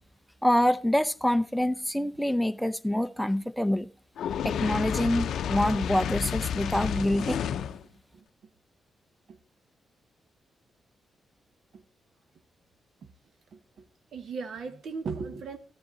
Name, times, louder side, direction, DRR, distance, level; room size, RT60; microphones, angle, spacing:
voice 1, 0.4-3.9 4.4-7.4, left 1 dB, ahead, 0.5 m, -26 dB
Fire, 4.2-7.8, left 8 dB, 85° left, 0.5 m, -30 dB
voice 2, 13.5-13.9 14.1-15.6, right 4 dB, 65° right, 1.0 m, -37 dB
13.0 x 9.9 x 3.8 m
wide cardioid pair, 150°, 0 cm